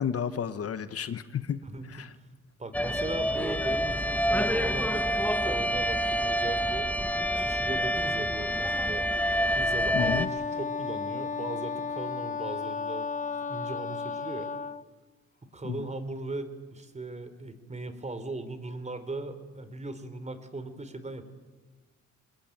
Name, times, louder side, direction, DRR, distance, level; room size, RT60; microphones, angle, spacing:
voice 1, 0.0-1.6 1.9-2.1 9.9-10.3 15.6-15.9, left 8 dB, 50° left, 12 dB, 1.2 m, -32 dB
voice 2, 1.6-2.1 2.6-6.9 7.3-9.1 9.5-13.1 13.5-14.5 15.4-21.3, right 2 dB, 20° right, 11 dB, 3.4 m, -38 dB
sound 1, 2.7-10.3, equal, 5° left, 1.1 m, -27 dB
Wind instrument woodwind instrument, 10.0-14.8, left 5 dB, 25° left, 1.1 m, -34 dB
26.0 x 20.5 x 9.3 m, 1.3 s
cardioid pair, 90°, 30 cm